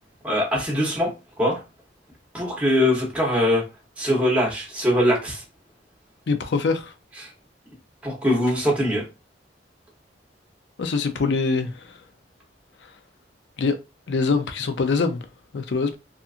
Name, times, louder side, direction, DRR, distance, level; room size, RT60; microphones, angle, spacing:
voice 1, 0.2-1.1 1.4-1.6 2.3-3.6 4.0-5.4 8.0-9.0, left 1 dB, 10° right, 0.8 m, -22 dB
voice 2, 6.3-6.9 10.8-11.9 13.6-13.8 14.1-15.2 15.5-15.9, left 4 dB, 70° left, 0.5 m, -23 dB
2.8 x 2.3 x 2.4 m
head